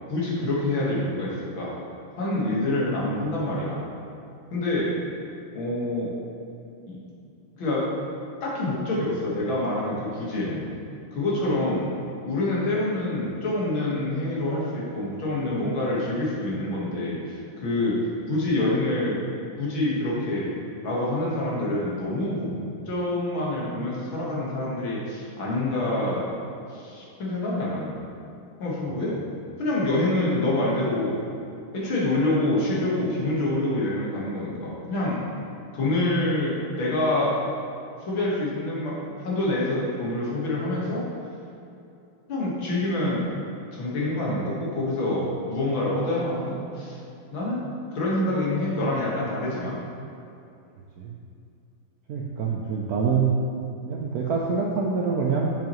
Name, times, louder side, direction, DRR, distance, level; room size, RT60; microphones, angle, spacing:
voice 1, 0.1-1.7 2.2-3.9 4.5-4.9 5.5-6.1 6.9-7.0 7.6-8.0 8.4-10.7 11.1-11.9 12.2-18.0 18.3-19.2 19.6-20.5 20.8-22.5 22.9-26.3 26.7-28.0 28.6-29.1 29.6-31.2 31.7-35.2 35.7-37.4 38.1-38.9 39.2-41.0 42.3-43.3 43.7-47.0 47.3-49.8, left 1 dB, 75° left, -6 dB, 2.3 m, -26 dB
voice 2, 52.1-53.3 53.8-55.5, right 5 dB, 70° right, -2 dB, 0.9 m, -25 dB
7.5 x 7.0 x 3.0 m, 2.6 s
omnidirectional pair, 2.2 m